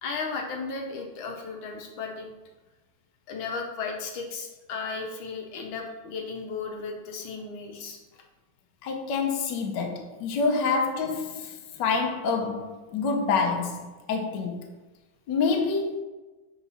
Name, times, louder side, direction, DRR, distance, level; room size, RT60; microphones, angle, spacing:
voice 1, 0.0-2.3 3.3-8.0 10.6-10.7, left 4 dB, 90° left, 1.7 m, -35 dB
voice 2, 8.8-14.7 15.3-16.0, left 4 dB, 70° left, 1.4 m, -27 dB
5.6 x 4.8 x 4.1 m
omnidirectional pair, 2.1 m